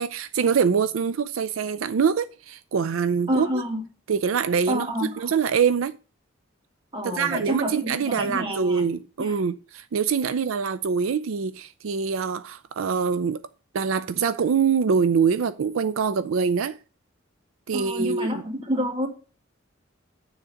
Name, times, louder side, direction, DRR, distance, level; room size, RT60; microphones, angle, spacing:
voice 1, 0.0-3.6 4.1-5.9 7.0-13.4 13.7-16.8 17.7-18.4, right 6 dB, 85° right, 0.4 m, -24 dB
voice 2, 3.3-3.8 4.7-5.3 6.9-8.9 9.2-9.3 17.7-19.1, equal, 25° right, 1.9 m, -28 dB
9.4 x 3.8 x 7.1 m
head